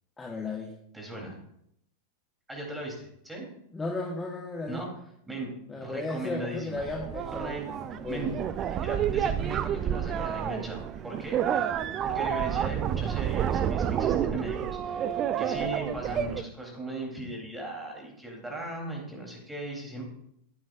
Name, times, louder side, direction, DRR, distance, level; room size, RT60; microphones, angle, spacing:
voice 1, 0.2-0.7 3.7-4.8 5.7-7.6 7.9-8.3, left 2 dB, 15° left, 1 dB, 1.3 m, -35 dB
voice 2, 0.9-1.4 2.5-3.5 4.7-4.9 5.3-6.8 7.3-7.6 8.1-8.3 8.8-15.1 15.4-20.0, right 2 dB, 5° right, -1 dB, 4.1 m, -38 dB
sound 1, 6.8-16.4, right 9 dB, 30° right, 0.5 m, -29 dB
16.0 x 8.9 x 2.7 m, 0.74 s
figure-of-eight pair, 90°, 0 cm